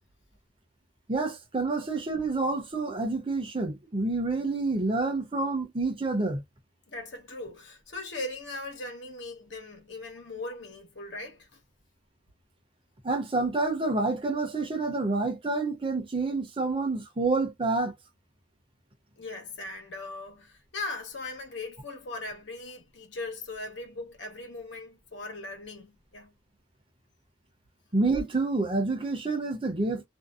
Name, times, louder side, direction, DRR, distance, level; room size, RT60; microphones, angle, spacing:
voice 1, 1.1-6.4 13.0-17.9 27.9-30.0, right 3 dB, 30° right, 0.7 m, -28 dB
voice 2, 6.9-11.5 19.2-26.4, left 2 dB, 70° left, 1.1 m, -39 dB
2.6 x 2.0 x 2.4 m
head